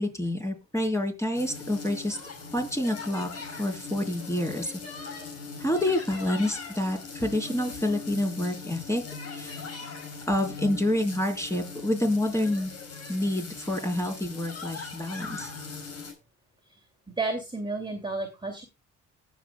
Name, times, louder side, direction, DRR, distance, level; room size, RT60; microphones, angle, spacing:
voice 1, 0.0-2.2 2.5-4.7 5.6-9.0 9.3-9.6 10.3-12.7 13.1-15.5, left 1 dB, 10° left, 3 dB, 3.9 m, -28 dB
sound 1, 1.3-16.1, left 4 dB, 55° left, 3.9 m, -40 dB
voice 2, 17.2-18.6, right 3 dB, 15° right, 2 dB, 2.4 m, -31 dB
19.5 x 6.8 x 2.2 m, 0.24 s
cardioid pair, 90°, 30 cm